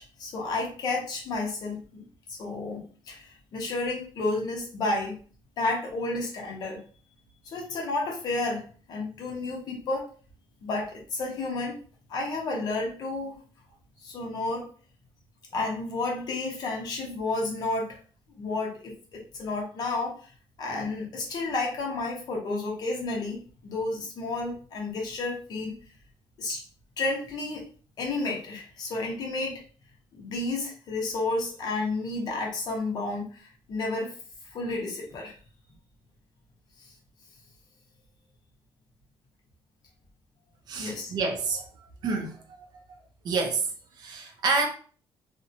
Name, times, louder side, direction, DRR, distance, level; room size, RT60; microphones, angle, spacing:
voice 1, 0.0-5.2 5.6-6.8 7.4-8.6 8.9-10.0 10.6-11.7 12.1-13.4 14.0-14.7 15.5-18.0 18.3-20.2 20.6-25.7 26.4-26.6 27.0-27.6 28.0-29.6 30.1-34.1 34.5-35.3 36.8-36.9 40.8-41.1, left 2 dB, 45° left, -1 dB, 0.8 m, -31 dB
voice 2, 40.7-41.7 42.0-42.4 43.2-43.7 44.0-44.7, right 4 dB, 45° right, 3 dB, 0.5 m, -28 dB
2.6 x 2.1 x 2.7 m, 0.41 s
cardioid pair, 170°, 10 cm